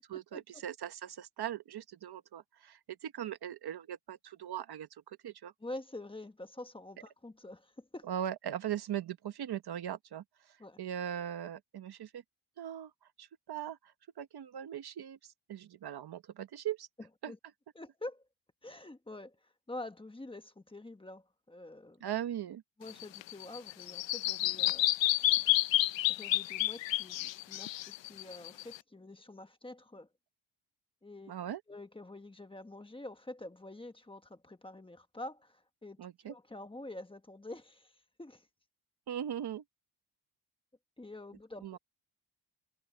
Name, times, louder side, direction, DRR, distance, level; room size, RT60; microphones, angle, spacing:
voice 1, 0.0-5.5 8.1-12.2 12.6-12.9 13.2-16.9 17.2-17.3 22.0-22.6 31.3-31.6 36.0-36.3 39.1-39.6 41.6-41.8, right 10 dB, 50° right, 1.1 m, -40 dB
voice 2, 5.6-8.1 10.6-10.8 17.0-17.4 17.7-18.3 18.6-22.0 22.8-24.9 26.1-27.7 28.0-30.1 31.0-31.3 31.7-38.5 41.0-41.8, left 2 dB, 10° left, 1.2 m, -47 dB
Bird vocalization bird call bird song, 22.9-28.8, left 16 dB, 65° left, 0.6 m, -30 dB
cardioid pair, 150°, 49 cm